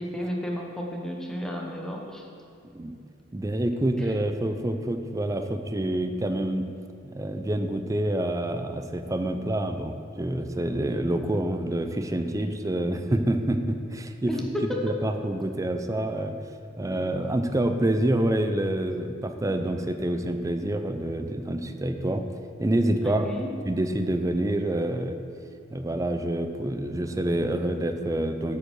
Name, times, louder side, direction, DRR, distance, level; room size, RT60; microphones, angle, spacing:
voice 1, 0.0-2.3 4.0-4.1 14.3-14.8 23.0-23.5, left 1 dB, 5° left, -1 dB, 1.0 m, -32 dB
voice 2, 3.3-6.7 7.0-14.3 14.8-16.4 16.8-22.2 22.6-23.3 23.7-25.2 25.7-28.6, right 1 dB, 15° right, 7 dB, 0.5 m, -27 dB
8.2 x 5.4 x 6.4 m, 2.5 s
head